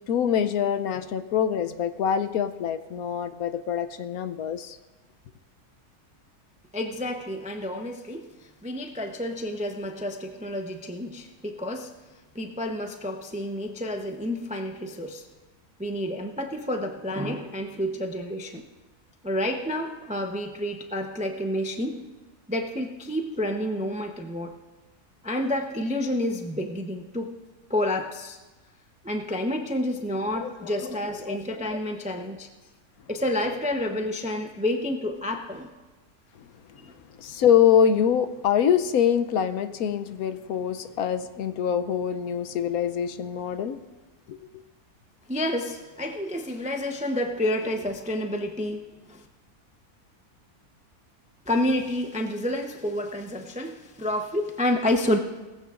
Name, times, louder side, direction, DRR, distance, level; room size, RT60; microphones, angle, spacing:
voice 1, 0.1-4.8 30.4-30.7 31.3-31.4 37.2-43.8 44.3-44.4, left 8 dB, 70° left, 10 dB, 1.1 m, -24 dB
voice 2, 6.7-11.9 12.3-15.2 15.8-18.6 19.2-22.1 22.5-24.6 25.2-27.4 27.7-28.4 29.0-32.5 33.1-35.7 36.8-36.9 45.3-49.2 51.5-55.2, left 1 dB, 10° right, 4 dB, 0.3 m, -29 dB
19.0 x 15.0 x 2.5 m, 1.2 s
omnidirectional pair, 1.7 m